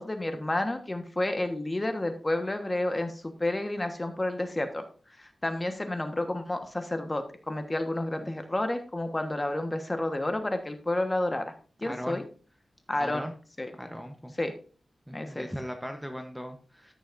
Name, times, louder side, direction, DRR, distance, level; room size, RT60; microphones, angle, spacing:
voice 1, 0.0-4.8 5.2-11.5 11.8-12.2 12.9-13.3 13.6-13.7 14.4-14.5 15.1-15.5, left 1 dB, 25° left, 7 dB, 1.3 m, -30 dB
voice 2, 11.8-12.2 13.0-13.3 13.8-14.3 15.1-16.9, equal, ahead, 5 dB, 0.9 m, -38 dB
14.0 x 6.3 x 2.6 m, 0.39 s
wide cardioid pair, 80°, 0 cm